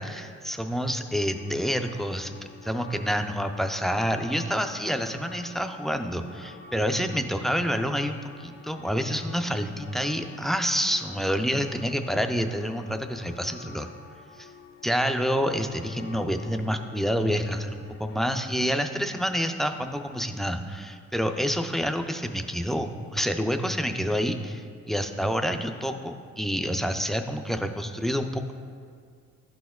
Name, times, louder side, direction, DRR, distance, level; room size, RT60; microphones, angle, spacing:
voice 1, 0.0-2.3 2.6-13.9 14.4-14.5 14.8-28.5, equal, ahead, 6 dB, 0.3 m, -28 dB
sound 1, 1.2-18.2, left 4 dB, 65° left, 0.9 m, -48 dB
12.0 x 4.2 x 2.3 m, 2.1 s
cardioid pair, 90°, 30 cm